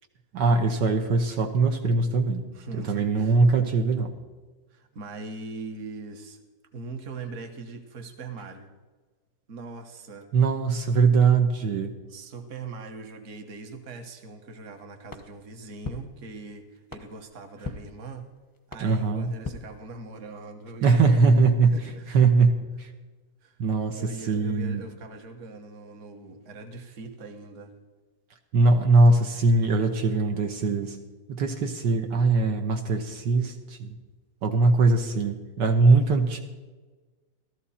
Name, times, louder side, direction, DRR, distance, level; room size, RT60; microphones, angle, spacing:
voice 1, 0.3-2.4 2.7-4.1 10.3-11.9 18.8-19.3 20.8-21.7 22.1-22.9 23.6-24.8 28.5-31.0 31.3-34.0 34.4-36.4, right 3 dB, 75° right, 4 dB, 1.6 m, -21 dB
voice 2, 2.5-3.4 4.7-6.4 6.7-8.7 9.5-10.3 12.1-18.3 18.7-21.2 21.7-22.3 23.4-23.6 23.9-27.7, right 3 dB, 45° right, 5 dB, 1.5 m, -41 dB
sound 1, 15.1-20.4, left 4 dB, 20° left, 0.5 m, -43 dB
14.5 x 13.5 x 4.2 m, 1.3 s
omnidirectional pair, 1.9 m